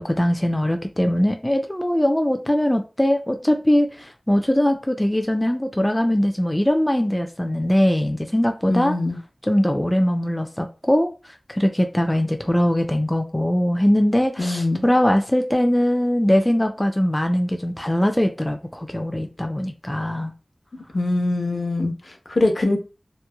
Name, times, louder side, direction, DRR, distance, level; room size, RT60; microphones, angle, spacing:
voice 1, 0.0-9.0 9.4-11.1 11.5-20.3, equal, 15° left, 0.3 m, -21 dB
voice 2, 8.7-9.2 14.4-14.8 20.9-22.8, left 2 dB, 70° left, 0.6 m, -23 dB
3.0 x 2.0 x 2.2 m
wide cardioid pair, 50°, 0 cm